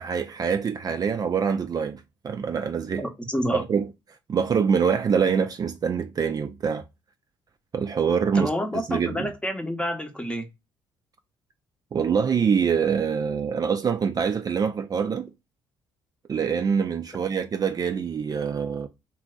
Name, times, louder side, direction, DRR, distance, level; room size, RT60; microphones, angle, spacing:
voice 1, 0.0-3.0 3.5-3.9 4.3-6.8 7.7-9.3 11.9-15.3 16.3-18.9, right 6 dB, 40° right, 0.4 m, -25 dB
voice 2, 3.0-3.6 8.3-10.5, equal, 10° left, 0.8 m, -28 dB
3.0 x 2.4 x 2.2 m
hypercardioid pair, 55°, 10 cm